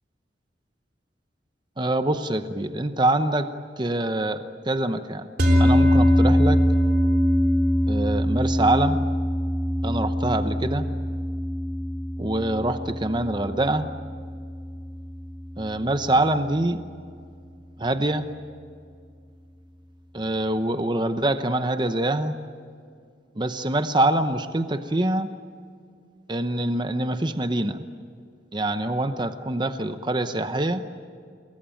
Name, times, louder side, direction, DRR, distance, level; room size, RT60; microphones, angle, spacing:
voice 1, 1.8-3.5 3.8-5.3 5.6-6.6 7.9-9.0 9.8-10.9 12.2-13.9 15.6-16.8 17.8-18.3 20.1-22.4 23.3-25.3 26.3-27.8 28.5-30.8, right 1 dB, 25° right, 9 dB, 0.9 m, -25 dB
sound 1, 5.4-15.8, equal, 55° right, 3.5 m, -23 dB
28.0 x 21.5 x 9.0 m, 2.2 s
head